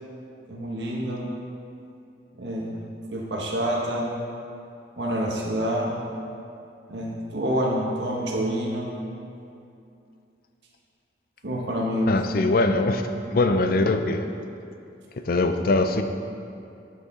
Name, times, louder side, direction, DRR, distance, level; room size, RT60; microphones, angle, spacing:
voice 1, 0.5-1.3 2.4-2.8 3.1-4.1 5.0-6.0 6.9-8.9 11.4-12.1, equal, 80° right, -3 dB, 1.3 m, -27 dB
voice 2, 12.1-13.0 13.3-14.3 15.3-16.0, left 2 dB, 55° left, 7 dB, 0.5 m, -22 dB
10.5 x 6.5 x 3.7 m, 2.6 s
head